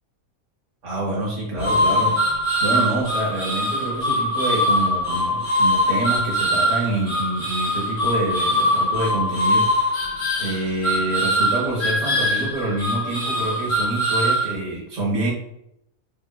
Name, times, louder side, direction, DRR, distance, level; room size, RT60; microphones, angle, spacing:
voice 1, 0.8-2.1 2.6-9.7 10.4-15.3, right 2 dB, 65° right, -4 dB, 1.4 m, -26 dB
sound 1, 1.6-14.5, equal, 25° left, 1.3 m, -22 dB
3.8 x 2.9 x 2.3 m, 0.78 s
omnidirectional pair, 1.4 m